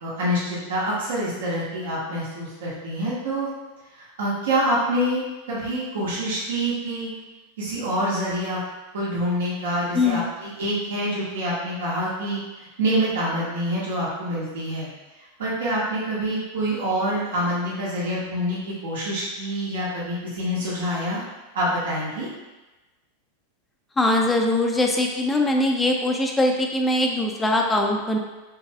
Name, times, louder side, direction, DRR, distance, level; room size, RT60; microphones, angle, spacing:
voice 1, 0.0-3.5 3.9-5.2 5.5-7.1 7.6-8.6 8.9-14.9 15.4-21.2 21.5-22.3, equal, 80° right, -8 dB, 1.4 m, -26 dB
voice 2, 9.9-10.2 24.0-28.2, left 2 dB, 15° left, 1 dB, 0.4 m, -21 dB
5.4 x 3.1 x 2.4 m, 1.1 s
hypercardioid pair, 105°, 0 cm